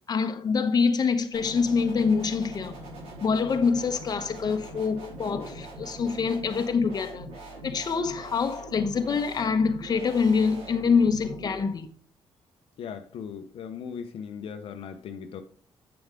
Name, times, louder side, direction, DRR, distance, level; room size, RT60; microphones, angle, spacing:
voice 1, 0.1-2.8 3.2-7.3 7.6-11.9, left 5 dB, 40° left, 1.0 m, -25 dB
sound 1, 1.3-11.6, right 1 dB, 90° right, 3.8 m, -42 dB
voice 2, 12.8-15.4, left 7 dB, 70° left, 0.8 m, -38 dB
8.0 x 6.9 x 3.7 m
cardioid pair, 105°, 10 cm